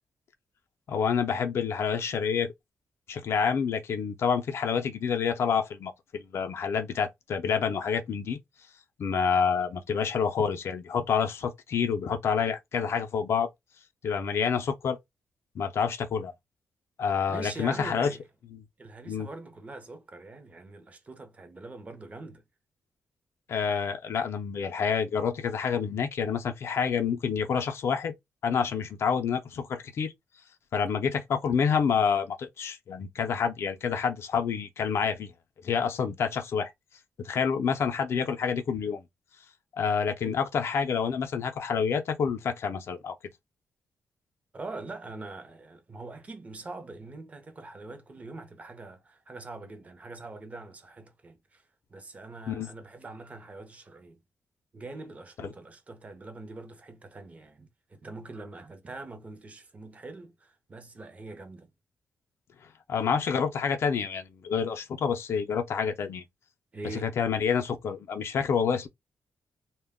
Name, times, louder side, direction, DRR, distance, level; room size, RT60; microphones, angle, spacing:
voice 1, 0.9-2.5 3.1-8.4 9.0-13.5 14.0-15.0 15.6-16.3 17.0-18.1 18.5-18.6 19.1-19.3 23.5-28.1 28.4-30.1 30.7-35.3 35.6-36.7 37.2-39.0 39.8-43.2 52.5-52.7 55.4-55.5 62.9-66.2 66.9-68.9, left 6 dB, 65° left, 0.4 m, -28 dB
voice 2, 17.3-18.3 18.8-22.4 40.2-40.4 44.5-51.6 51.9-54.2 54.7-61.7 66.7-67.1, right 2 dB, 30° right, 0.6 m, -43 dB
2.1 x 2.0 x 3.5 m
cardioid pair, 105°, 5 cm